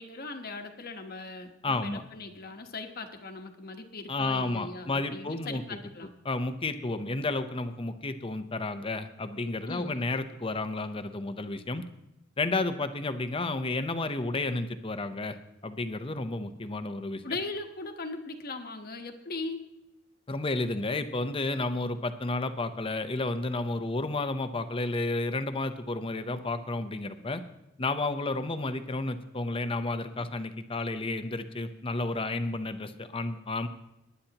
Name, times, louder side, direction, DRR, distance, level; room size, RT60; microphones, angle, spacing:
voice 1, 0.0-6.1 9.7-10.0 17.2-19.6, left 3 dB, 45° left, 5 dB, 1.2 m, -39 dB
voice 2, 1.6-2.0 4.1-5.8 6.2-11.8 12.4-15.4 15.6-17.2 20.3-27.4 27.8-33.7, left 2 dB, 25° left, 9 dB, 0.7 m, -31 dB
19.5 x 10.0 x 2.9 m, 0.91 s
head